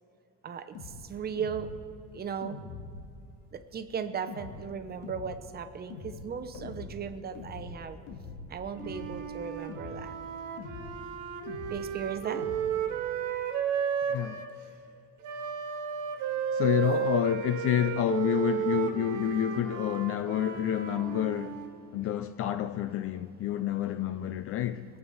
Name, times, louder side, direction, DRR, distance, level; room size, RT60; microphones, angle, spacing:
sound 1, 0.7-1.0 1.4-1.8 2.4-3.1 4.3-4.6 5.0-5.4 5.9-6.2 6.5-6.9 7.3-7.8 8.1-8.5 8.8-9.2 9.7-10.0 10.6-10.9 11.5-11.8 12.3-12.6, left 4 dB, 70° left, 1.9 m, -43 dB
voice 1, 1.0-1.7 2.1-2.6 3.5-8.0 8.5-10.1 11.7-12.5, right 7 dB, 30° right, 0.8 m, -36 dB
Wind instrument woodwind instrument, 8.8-14.5 15.2-21.7, right 7 dB, 65° right, 1.5 m, -33 dB
voice 2, 14.1-14.4 16.5-21.6 21.9-24.9, left 11 dB, 45° left, 0.5 m, -29 dB
20.5 x 8.1 x 5.5 m
cardioid pair, 125°, 31 cm